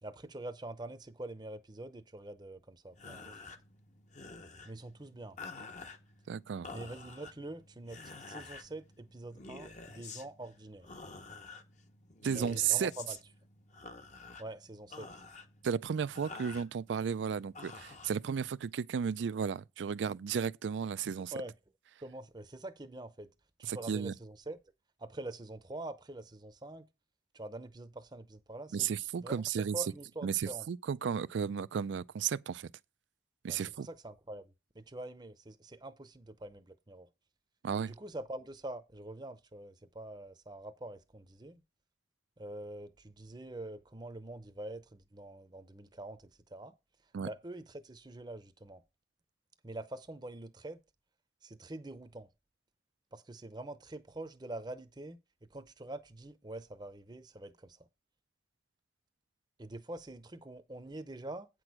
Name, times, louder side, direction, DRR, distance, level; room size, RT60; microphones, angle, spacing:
voice 1, 0.0-3.4 4.6-5.4 6.7-10.9 12.3-13.2 14.4-15.1 21.3-21.5 22.0-23.3 23.6-24.6 25.0-26.9 27.3-28.9 29.2-30.7 33.5-37.1 37.8-41.6 42.4-46.7 47.2-48.8 49.6-50.8 51.4-52.3 53.1-55.2 55.5-57.8 59.6-61.5, right 1 dB, 25° right, 0.6 m, -45 dB
sound 1, 2.9-18.8, left 3 dB, 40° left, 0.8 m, -50 dB
voice 2, 6.3-6.7 12.2-12.9 15.6-21.3 23.6-24.1 28.7-29.8 30.2-32.7 33.4-33.9 37.6-37.9 47.1-47.3, right 7 dB, 85° right, 0.4 m, -34 dB
8.8 x 6.2 x 4.8 m
head